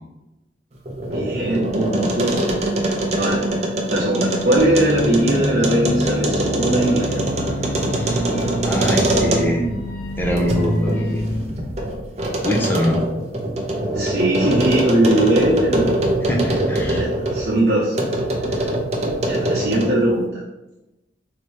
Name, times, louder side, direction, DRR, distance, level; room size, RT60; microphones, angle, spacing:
sound 1, 0.7-9.7 10.2-17.5 17.9-20.1, right 1 dB, 40° right, 0.6 m, -23 dB
voice 1, 1.1-2.3 3.2-3.4 3.9-7.2 13.9-16.0 17.0-18.0 18.5-18.7 19.3-20.4, right 1 dB, 65° right, -7 dB, 0.9 m, -20 dB
sound 2, 4.6-11.4, equal, 55° left, 0.6 m, -26 dB
voice 2, 7.5-8.3 8.6-9.7 10.2-11.2 12.4-13.0 16.2-17.0, equal, 10° left, -2 dB, 0.7 m, -23 dB
4.0 x 2.9 x 3.2 m, 0.99 s
head